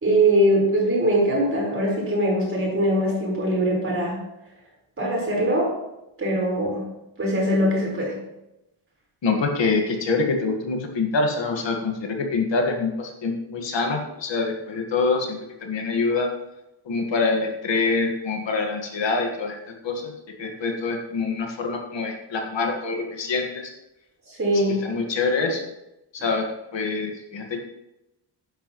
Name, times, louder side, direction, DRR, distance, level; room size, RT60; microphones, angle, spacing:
voice 1, 0.0-4.2 5.0-5.7 6.2-6.9 7.2-8.2 24.3-24.8, right 1 dB, 25° right, -3 dB, 4.5 m, -22 dB
voice 2, 9.2-16.3 16.8-19.6 19.8-20.1 20.4-23.7 24.5-25.7 26.1-27.6, left 4 dB, 60° left, 3 dB, 1.7 m, -25 dB
13.0 x 10.5 x 3.1 m, 0.90 s
wide cardioid pair, 170°, 49 cm